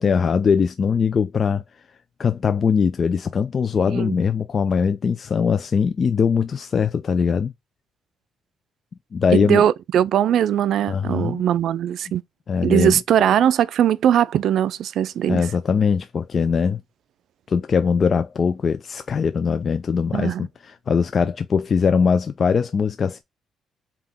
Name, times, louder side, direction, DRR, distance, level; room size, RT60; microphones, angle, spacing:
voice 1, 0.0-1.8 2.2-7.5 9.1-9.7 10.9-11.4 12.5-13.0 15.3-16.8 17.5-23.2, left 6 dB, 45° left, 0.4 m, -21 dB
voice 2, 9.3-12.2 12.6-15.4 20.1-20.4, right 10 dB, 70° right, 0.4 m, -20 dB
3.6 x 2.9 x 3.4 m
cardioid pair, 90°, 0 cm